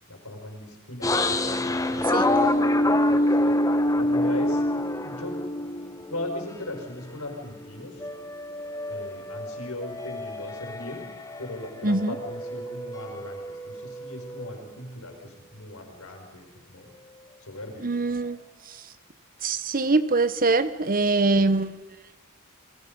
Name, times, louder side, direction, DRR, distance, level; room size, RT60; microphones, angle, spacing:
voice 1, 0.1-3.6 4.0-4.6 5.0-5.4 6.1-8.0 8.9-11.1 11.4-16.9 17.4-17.9, left 1 dB, 80° left, 3 dB, 5.5 m, -38 dB
sound 1, 1.0-7.0 7.4-11.6 11.9-14.5, left 1 dB, 15° left, 1.1 m, -26 dB
voice 2, 11.8-12.2 17.8-18.9 19.4-21.8, right 3 dB, 40° right, 12 dB, 1.1 m, -24 dB
29.0 x 21.5 x 5.5 m, 1.2 s
head